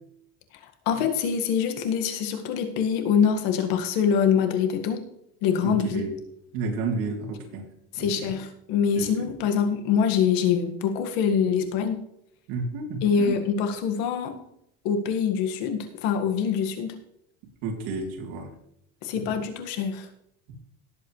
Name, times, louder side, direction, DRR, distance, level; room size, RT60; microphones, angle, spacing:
voice 1, 0.9-5.1 5.4-6.0 7.9-12.0 13.0-14.3 14.8-17.0 19.0-20.1, left 7 dB, 75° left, 5 dB, 2.0 m, -24 dB
voice 2, 5.6-6.2 6.5-7.6 8.0-8.1 8.9-9.1 12.5-13.4 17.6-18.5 19.2-19.3, right 3 dB, 75° right, 1 dB, 3.4 m, -31 dB
17.5 x 8.0 x 3.3 m, 0.76 s
cardioid pair, 150°, 36 cm